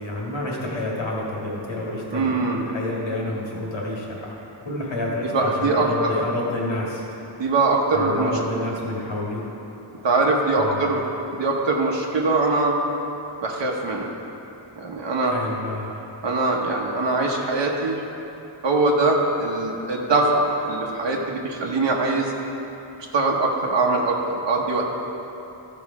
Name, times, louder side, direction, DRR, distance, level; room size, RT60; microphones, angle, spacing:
voice 1, 0.0-7.0 7.9-9.5 10.6-10.9 15.3-16.0, left 1 dB, 80° left, -4 dB, 2.0 m, -29 dB
voice 2, 2.1-2.6 5.3-6.1 7.4-8.3 10.0-11.0 11.3-12.7 13.4-14.1 14.8-15.3 16.2-18.0 18.6-22.3 23.1-24.8, right 3 dB, 75° right, -1 dB, 1.0 m, -22 dB
13.5 x 5.1 x 4.8 m, 3.0 s
wide cardioid pair, 120°, 45 cm